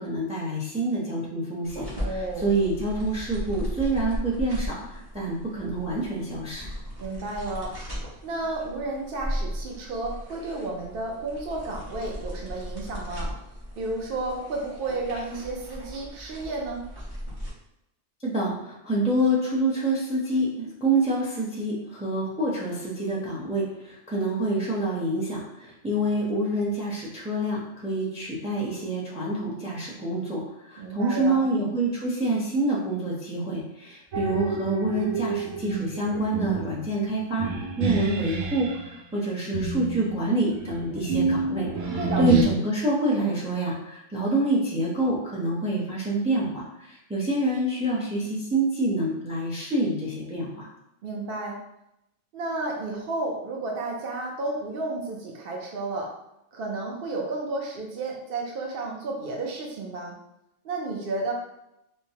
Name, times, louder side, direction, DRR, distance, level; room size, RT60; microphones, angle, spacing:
voice 1, 0.0-6.7 18.2-38.7 39.1-50.7, right 1 dB, 10° right, -4 dB, 0.5 m, -27 dB
sound 1, 1.6-17.5, equal, 30° right, 1.1 m, -36 dB
voice 2, 2.0-2.5 7.0-7.7 8.2-13.3 13.8-16.8 30.8-31.4 42.0-42.6 51.0-51.5 52.3-56.1 56.5-60.1 60.6-61.3, right 2 dB, 55° right, -1 dB, 0.7 m, -32 dB
sound 2, 34.1-38.8 39.5-42.4, right 3 dB, 90° right, 1.0 m, -29 dB
4.6 x 2.1 x 2.8 m, 0.86 s
omnidirectional pair, 1.3 m